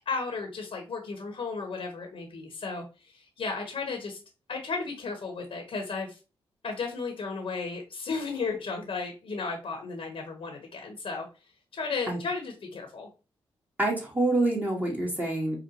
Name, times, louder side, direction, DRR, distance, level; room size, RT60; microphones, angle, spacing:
voice 1, 0.1-4.2 4.5-6.2 6.6-11.3 11.7-13.1, left 4 dB, 65° left, 3 dB, 1.0 m, -34 dB
voice 2, 13.8-15.6, right 2 dB, 15° right, -2 dB, 1.4 m, -26 dB
4.8 x 2.2 x 2.8 m, 0.31 s
cardioid pair, 60°, 10 cm